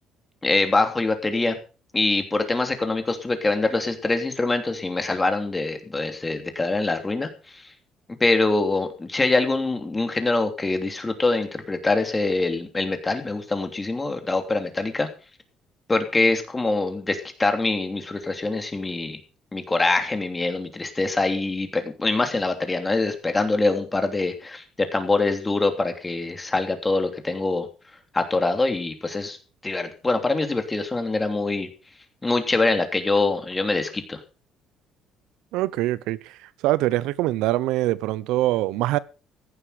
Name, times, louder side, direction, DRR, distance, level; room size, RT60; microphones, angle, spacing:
voice 1, 0.4-1.6 1.9-7.6 8.2-15.1 15.9-19.2 19.5-27.7 28.1-29.4 29.6-31.7 32.2-34.2, left 3 dB, 15° left, 3.0 m, -24 dB
voice 2, 35.5-36.4 36.6-39.0, right 16 dB, 85° right, 0.7 m, -23 dB
15.0 x 11.0 x 5.0 m
cardioid pair, 120°, 0 cm